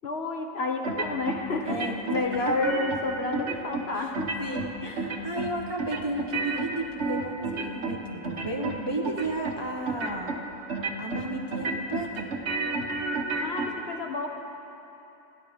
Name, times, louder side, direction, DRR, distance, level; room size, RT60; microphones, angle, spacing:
voice 1, 0.0-1.8 2.1-4.3 13.4-14.3, left 3 dB, 50° left, 2 dB, 1.2 m, -30 dB
sound 1, 0.8-1.4 1.7-3.0 3.3-3.8 4.1-4.7 5.0-5.5 5.8-8.0 8.2-8.8 9.0-9.6 9.9-10.4 10.7-11.2 11.5-13.7, right 3 dB, 60° right, 1.4 m, -30 dB
voice 2, 1.6-2.5 3.9-10.3 11.0-12.3, right 1 dB, 20° right, 0 dB, 0.9 m, -34 dB
29.5 x 11.0 x 3.6 m, 3.0 s
omnidirectional pair, 1.4 m